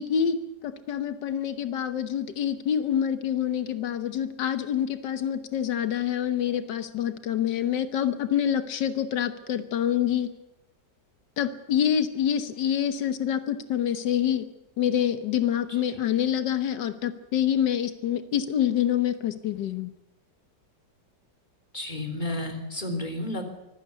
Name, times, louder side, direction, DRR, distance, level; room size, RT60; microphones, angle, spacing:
voice 1, 0.0-10.3 11.4-14.4 14.8-19.9, left 9 dB, 85° left, 9 dB, 1.7 m, -26 dB
voice 2, 21.7-23.4, left 1 dB, 25° left, 4 dB, 3.6 m, -32 dB
24.5 x 16.5 x 8.2 m, 0.93 s
omnidirectional pair, 1.8 m